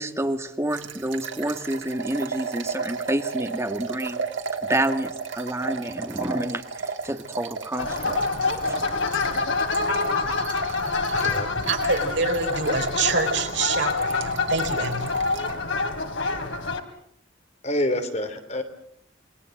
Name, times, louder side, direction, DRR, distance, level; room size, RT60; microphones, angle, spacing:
voice 1, 0.0-4.3 4.6-8.2, right 1 dB, 15° right, 6 dB, 1.9 m, -28 dB
sound 1, 0.7-15.5, right 5 dB, 80° right, 2.6 m, -34 dB
sound 2, 7.8-16.8, left 4 dB, 75° left, 3.0 m, -26 dB
voice 2, 11.3-15.1, right 4 dB, 65° right, 4 dB, 4.6 m, -26 dB
voice 3, 17.6-18.6, left 1 dB, 35° left, 7 dB, 3.0 m, -27 dB
28.5 x 20.5 x 7.7 m, 0.69 s
head